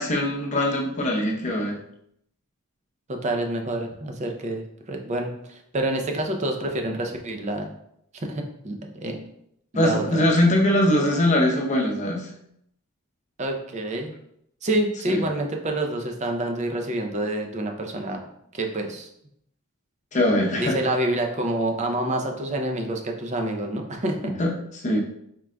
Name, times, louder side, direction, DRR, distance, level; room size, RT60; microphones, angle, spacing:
voice 1, 0.0-1.8 9.7-12.3 15.1-15.2 20.1-20.8 24.2-25.0, left 1 dB, 35° left, -1 dB, 0.7 m, -22 dB
voice 2, 3.1-4.6 4.9-7.7 8.3-8.8 9.0-9.3 9.7-10.2 13.4-14.1 14.6-18.2 18.5-19.1 20.6-24.3, right 1 dB, 30° right, 3 dB, 0.5 m, -27 dB
4.6 x 3.7 x 2.2 m, 0.74 s
head